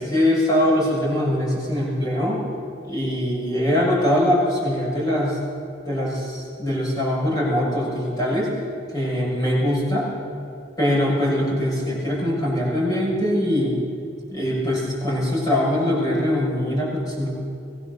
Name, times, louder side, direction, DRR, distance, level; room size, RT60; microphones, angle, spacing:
voice 1, 0.0-2.4 2.9-5.4 5.8-8.5 8.9-10.1 10.8-13.7 14.3-17.3, left 1 dB, 20° left, -4 dB, 6.6 m, -22 dB
22.5 x 17.5 x 6.9 m, 2.6 s
head